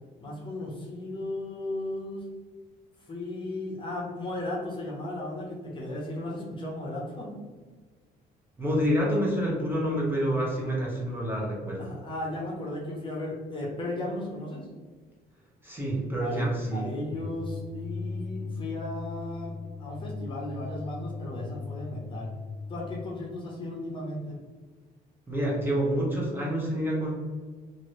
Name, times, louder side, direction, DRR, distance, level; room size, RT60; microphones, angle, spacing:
voice 1, 0.2-2.2 3.0-7.3 11.8-14.7 16.2-22.3 22.7-24.4, left 1 dB, 30° left, -3 dB, 0.8 m, -35 dB
voice 2, 8.6-11.9 15.6-16.8 25.3-27.1, equal, 10° right, -4 dB, 1.0 m, -27 dB
sound 1, 17.1-23.1, left 4 dB, 45° left, 0.5 m, -38 dB
2.9 x 2.6 x 3.1 m, 1.4 s
cardioid pair, 110°, 17 cm